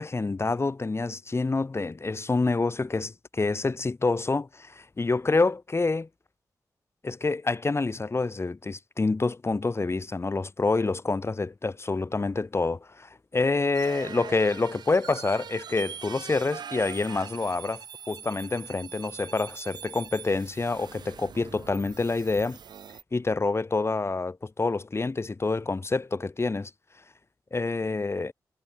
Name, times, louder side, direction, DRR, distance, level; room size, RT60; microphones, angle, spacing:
voice 1, 0.0-6.1 7.0-22.6 23.1-26.7 27.5-28.3, left 3 dB, 35° left, 1.9 m, -27 dB
sound 1, 13.7-23.0, right 7 dB, 80° right, 5.2 m, -42 dB
cardioid pair, 50°, 7 cm